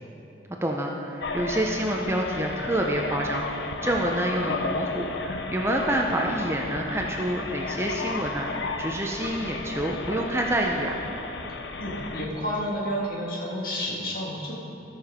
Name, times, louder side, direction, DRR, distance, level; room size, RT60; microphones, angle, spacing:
voice 1, 0.6-3.4 3.8-8.5 8.8-11.0, right 1 dB, 15° right, 0 dB, 0.6 m, -27 dB
sound 1, 1.2-12.3, left 3 dB, 70° left, 0.7 m, -33 dB
voice 2, 11.8-14.5, equal, 50° left, -4 dB, 2.0 m, -30 dB
13.5 x 6.7 x 5.1 m, 2.9 s
head